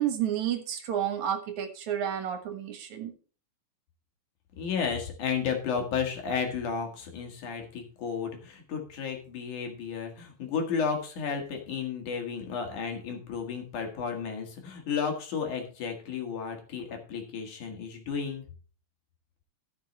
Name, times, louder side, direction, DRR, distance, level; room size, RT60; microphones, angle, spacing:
voice 1, 0.0-3.1, right 10 dB, 65° right, 7 dB, 2.7 m, -30 dB
voice 2, 4.6-18.4, left 6 dB, 70° left, 3 dB, 3.4 m, -33 dB
14.0 x 6.7 x 4.2 m, 0.40 s
omnidirectional pair, 3.7 m